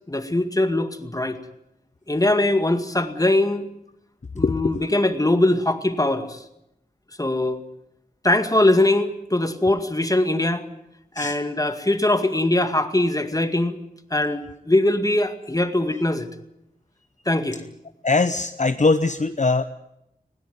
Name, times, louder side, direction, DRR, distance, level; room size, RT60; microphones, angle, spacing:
voice 1, 0.1-1.4 2.1-3.7 4.3-6.4 7.2-7.6 8.2-10.6 11.2-13.8 14.1-16.3 17.3-17.6, left 1 dB, 20° left, 8 dB, 2.1 m, -21 dB
voice 2, 4.4-4.9 11.2-11.4 18.0-19.7, left 3 dB, 50° left, 10 dB, 0.9 m, -21 dB
20.5 x 17.5 x 9.5 m, 0.81 s
wide cardioid pair, 60°, 16 cm